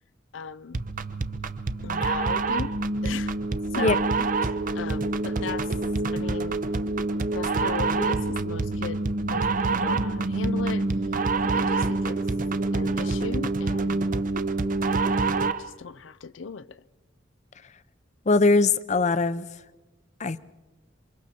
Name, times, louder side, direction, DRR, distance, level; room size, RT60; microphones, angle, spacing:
voice 1, 0.3-0.8 1.8-2.8 3.0-3.4 3.7-4.1 4.4-5.7 6.1-6.7 7.3-9.0 9.3-10.9 11.4-12.2 12.7-14.2 15.4-16.8, left 5 dB, 85° left, 0.6 m, -37 dB
sound 1, 0.7-15.7, right 3 dB, 45° right, 0.7 m, -26 dB
voice 2, 18.3-19.5 20.2-20.4, left 3 dB, 40° left, 0.7 m, -21 dB
27.5 x 24.5 x 4.4 m
head